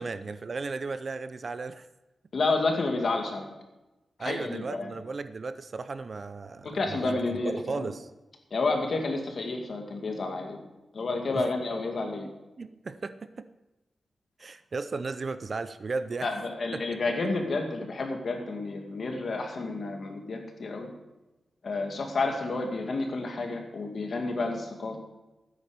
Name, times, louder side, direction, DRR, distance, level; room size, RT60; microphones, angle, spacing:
voice 1, 0.0-1.9 4.2-8.1 11.3-11.5 12.2-13.5 14.4-16.3 16.7-16.8 17.2-17.3, right 4 dB, 40° right, 12 dB, 0.6 m, -35 dB
voice 2, 2.3-3.5 4.2-4.9 6.6-7.9 8.5-10.6 10.9-12.3 16.2-20.9 21.6-25.0, left 3 dB, 55° left, 3 dB, 2.2 m, -30 dB
13.5 x 9.9 x 5.2 m, 1.0 s
wide cardioid pair, 155°, 0 cm